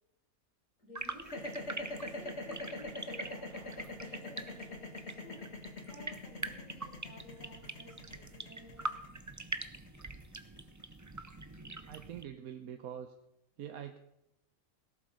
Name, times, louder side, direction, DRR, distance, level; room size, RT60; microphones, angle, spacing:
voice 1, 0.8-1.5 1.9-4.8 5.2-5.4 5.9-8.9 10.0-10.5, left 1 dB, 65° left, -4 dB, 7.6 m, -54 dB
sound 1, 0.9-12.2, right 2 dB, 25° right, 0.4 m, -44 dB
sound 2, 1.2-11.4, left 2 dB, 50° left, 2.1 m, -43 dB
voice 2, 11.9-13.1 13.6-14.0, right 9 dB, 85° right, 6 dB, 1.3 m, -44 dB
17.5 x 11.5 x 5.1 m, 0.83 s
omnidirectional pair, 1.5 m